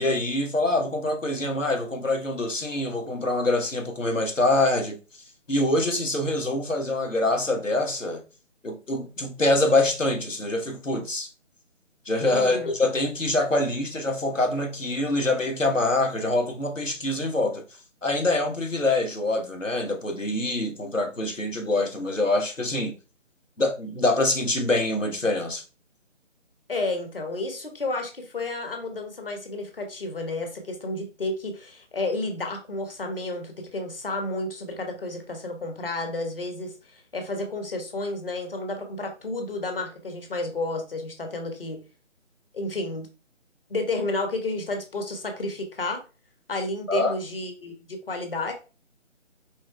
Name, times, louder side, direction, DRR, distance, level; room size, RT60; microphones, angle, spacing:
voice 1, 0.0-5.0 5.5-8.2 8.6-11.3 12.0-17.6 18.0-23.0 23.6-25.6 46.9-47.1, left 2 dB, 90° left, 1.3 m, -25 dB
voice 2, 12.3-12.7 26.7-41.8 42.5-43.1 43.7-46.0 46.5-48.5, left 2 dB, 50° left, 1.2 m, -31 dB
4.7 x 3.8 x 2.2 m
figure-of-eight pair, 155°, 37 cm